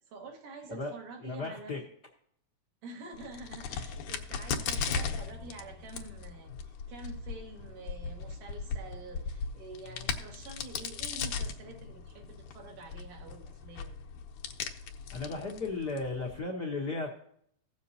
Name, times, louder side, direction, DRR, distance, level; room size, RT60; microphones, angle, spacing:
voice 1, 0.1-1.8 2.8-14.0, right 3 dB, 80° right, 1 dB, 3.1 m, -47 dB
voice 2, 1.2-1.8 15.1-17.2, left 3 dB, 60° left, -1 dB, 1.0 m, -35 dB
Crack, 3.1-16.4, left 6 dB, 75° left, 2.3 m, -38 dB
16.5 x 7.3 x 2.8 m, 0.67 s
omnidirectional pair, 3.6 m